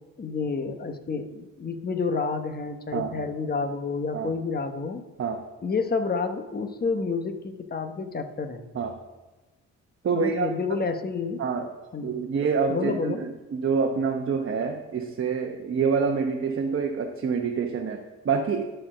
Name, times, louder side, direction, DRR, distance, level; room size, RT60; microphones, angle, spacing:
voice 1, 0.2-5.0 5.6-8.6 10.1-11.4 11.9-12.2 12.7-13.2, left 4 dB, 30° left, 6 dB, 1.1 m, -29 dB
voice 2, 2.9-3.3 4.1-4.3 5.2-5.4 8.7-9.0 10.0-10.5 11.4-11.7 12.0-18.6, right 5 dB, 45° right, 2 dB, 1.0 m, -27 dB
11.5 x 4.5 x 6.2 m, 1.2 s
cardioid pair, 90°, 30 cm